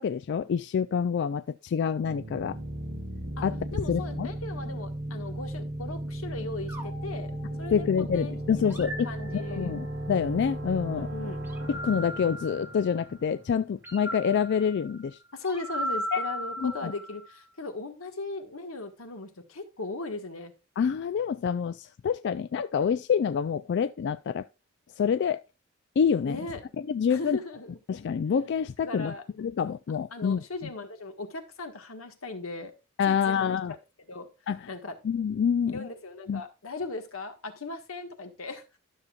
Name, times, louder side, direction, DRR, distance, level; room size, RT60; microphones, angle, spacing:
voice 1, 0.0-2.6 3.4-4.3 7.7-9.1 9.3-11.1 11.7-15.2 16.1-16.2 16.6-16.9 20.8-24.5 25.0-25.4 26.0-26.4 26.9-27.4 27.9-30.4 33.0-33.7 34.5-34.6 35.0-35.9 36.3-36.4, left 7 dB, 55° left, 0.3 m, -27 dB
sound 1, 2.0-13.6, right 1 dB, 55° right, 2.2 m, -36 dB
voice 2, 3.7-9.7 11.0-11.5 15.3-20.5 26.2-26.6 27.1-27.8 28.8-29.2 30.1-32.7 33.1-33.6 34.1-34.3 34.7-35.0 35.7-38.6, left 3 dB, 90° left, 1.5 m, -38 dB
sound 2, 6.7-8.1 8.7-10.0 11.4-13.2 13.8-17.4, equal, 10° right, 1.7 m, -38 dB
12.5 x 6.6 x 2.4 m
head